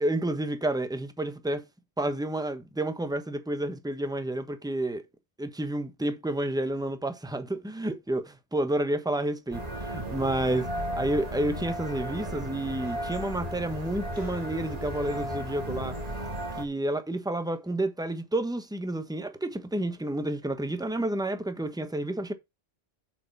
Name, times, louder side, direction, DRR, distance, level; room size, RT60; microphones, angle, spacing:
voice 1, 0.0-1.6 2.0-5.0 5.4-16.0 16.6-22.3, right 1 dB, 5° right, 1.1 m, -30 dB
sound 1, 9.5-16.6, equal, 35° right, 2.8 m, -35 dB
7.6 x 6.1 x 5.5 m
omnidirectional pair, 1.1 m